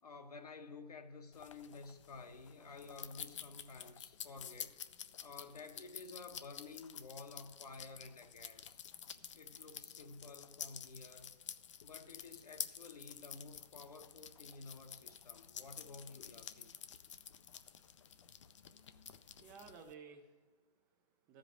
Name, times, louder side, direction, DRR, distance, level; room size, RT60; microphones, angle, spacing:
voice 1, 0.0-4.8 5.2-8.8 9.3-11.3 11.8-16.7, left 4 dB, 70° left, 5 dB, 1.2 m, -52 dB
sound 1, 1.3-19.9, left 8 dB, 50° left, 0.5 m, -50 dB
voice 2, 18.5-21.4, right 5 dB, 15° right, 4 dB, 0.4 m, -58 dB
13.5 x 5.2 x 6.2 m, 1.5 s
figure-of-eight pair, 135°, 21 cm